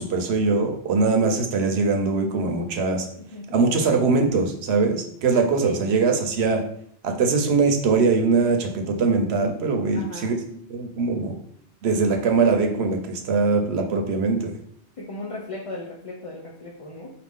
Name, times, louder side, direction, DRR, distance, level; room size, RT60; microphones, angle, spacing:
voice 1, 0.0-3.1 3.5-6.6 7.0-10.4 10.7-11.3 11.8-14.6, right 4 dB, 80° right, 5 dB, 0.9 m, -22 dB
voice 2, 3.2-3.5 5.6-5.8 9.9-10.3 15.0-17.1, left 2 dB, 40° left, -2 dB, 0.5 m, -36 dB
4.4 x 2.5 x 3.5 m, 0.64 s
omnidirectional pair, 1.1 m